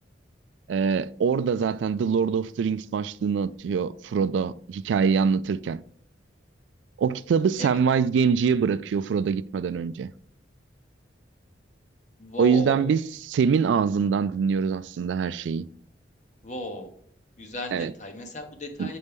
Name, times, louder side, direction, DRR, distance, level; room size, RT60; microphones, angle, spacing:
voice 1, 0.7-5.8 7.0-10.1 12.4-15.7 17.7-17.9 18.8-18.9, right 6 dB, 85° right, 0.3 m, -24 dB
voice 2, 12.2-12.8 16.4-16.9 17.4-19.0, left 1 dB, 40° left, 1.1 m, -35 dB
8.0 x 4.2 x 3.5 m
head